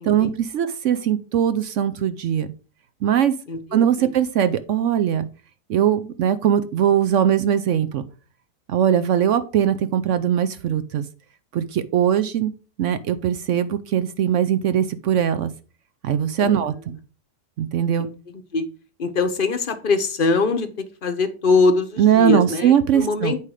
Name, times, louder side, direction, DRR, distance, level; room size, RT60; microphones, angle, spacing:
voice 1, 0.0-2.5 3.0-3.3 3.7-5.3 5.7-8.0 8.7-11.0 11.5-12.5 12.8-15.5 16.0-17.0 17.6-18.1 22.0-23.3, right 9 dB, 70° right, 12 dB, 0.7 m, -20 dB
voice 2, 3.5-4.1 16.4-16.5 18.0-18.1 18.5-18.7 19.0-23.4, left 4 dB, 40° left, 8 dB, 0.8 m, -22 dB
8.4 x 4.9 x 4.8 m, 0.36 s
omnidirectional pair, 1.8 m